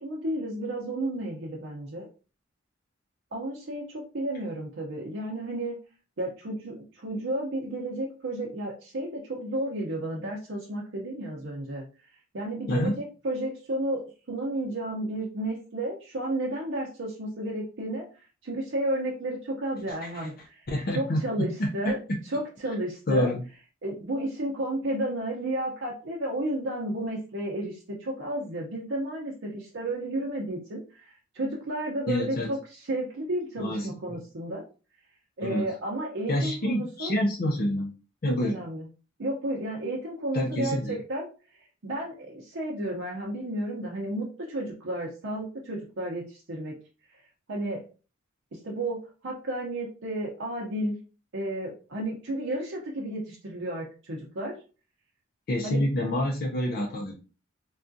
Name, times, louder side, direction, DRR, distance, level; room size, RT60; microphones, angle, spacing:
voice 1, 0.0-2.1 3.3-5.8 6.2-20.7 20.9-22.0 22.2-23.3 23.8-34.6 35.4-37.2 38.4-38.9 39.2-46.7 47.1-47.2 47.5-47.8 48.5-51.0 51.3-54.5 55.6-55.9, right 1 dB, 65° right, -3 dB, 0.7 m, -32 dB
voice 2, 20.7-21.4 21.8-21.9 23.1-23.4 32.1-32.5 33.6-34.2 35.4-35.6 36.3-37.9 38.2-38.5 40.3-40.9 55.5-57.2, left 1 dB, 50° left, -1 dB, 0.5 m, -27 dB
3.5 x 2.3 x 2.6 m, 0.35 s
head